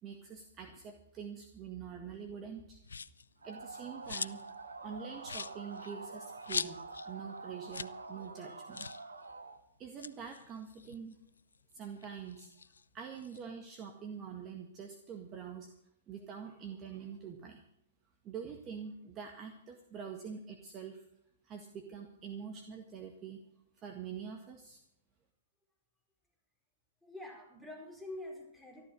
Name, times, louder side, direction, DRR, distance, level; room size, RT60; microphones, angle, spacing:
voice 1, 0.0-2.8 3.4-4.4 4.8-6.8 7.1-8.9 9.8-11.2 11.7-12.5 12.9-15.7 16.1-17.6 18.2-21.0 21.4-23.4 23.8-24.8, right 7 dB, 30° right, 4 dB, 1.8 m, -45 dB
sound 1, 2.8-3.3 3.7-4.6 4.9-5.0 5.2-7.1 7.4-7.5 7.7-8.0 8.3-8.4 8.7-9.1 9.8-11.5 12.0-13.4, left 5 dB, 80° left, 0.5 m, -41 dB
sound 2, 3.4-9.6, right 3 dB, 85° right, 1.6 m, -47 dB
voice 2, 27.0-28.9, left 1 dB, ahead, -1 dB, 4.5 m, -46 dB
13.5 x 12.0 x 6.3 m, 0.76 s
hypercardioid pair, 115°, 0 cm